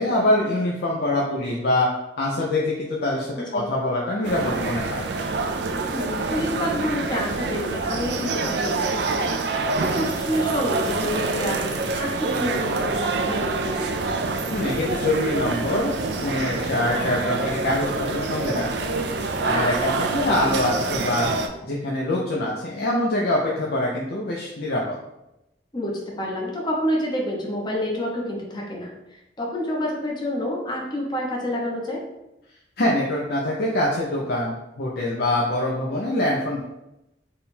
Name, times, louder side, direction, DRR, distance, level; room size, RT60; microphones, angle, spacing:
voice 1, 0.0-1.9 2.2-5.1 14.5-15.9 16.2-18.7 19.4-21.3 21.6-25.0 32.8-36.6, left 1 dB, 60° left, -3 dB, 0.5 m, -24 dB
voice 2, 3.4-3.7 5.9-13.8 19.5-19.9 25.7-32.0, left 1 dB, 25° left, -2 dB, 0.7 m, -28 dB
sound 1, 4.2-21.5, right 3 dB, 70° right, 0.4 m, -26 dB
3.6 x 2.3 x 4.1 m, 0.92 s
head